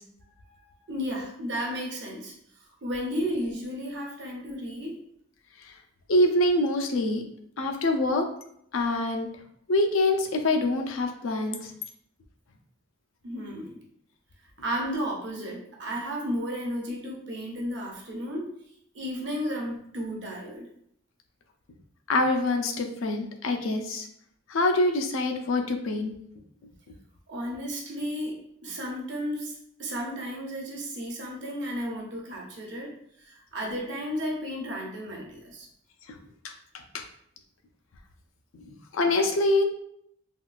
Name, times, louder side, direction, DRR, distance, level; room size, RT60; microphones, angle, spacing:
voice 1, 0.4-2.3 2.8-5.0 13.2-13.8 14.6-18.5 18.9-20.7 27.3-28.4 28.6-32.9 33.2-35.7, equal, 60° right, -1 dB, 0.7 m, -33 dB
voice 2, 6.1-7.2 7.6-8.3 8.7-9.3 9.7-11.7 22.1-24.1 24.5-26.1 36.4-36.5 36.9-37.0 38.5-39.6, left 2 dB, 85° left, 5 dB, 0.4 m, -25 dB
3.5 x 2.3 x 2.4 m, 0.69 s
head